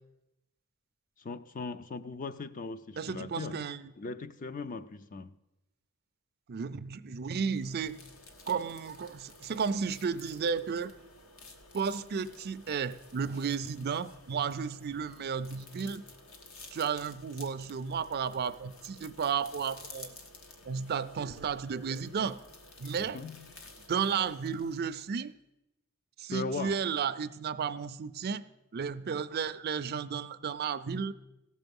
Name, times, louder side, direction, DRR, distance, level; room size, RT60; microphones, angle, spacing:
voice 1, 1.2-3.7 4.0-5.3 23.0-23.5 26.3-26.8, left 4 dB, 40° left, 0.5 m, -39 dB
voice 2, 3.0-3.8 6.5-8.0 8.5-11.0 11.7-16.0 16.7-20.1 20.7-22.4 22.8-23.2 23.9-25.3 26.2-28.4 28.7-31.1, right 6 dB, 50° right, 0.4 m, -33 dB
sound 1, 7.4-25.3, left 3 dB, 70° left, 1.3 m, -53 dB
16.5 x 6.8 x 5.3 m
head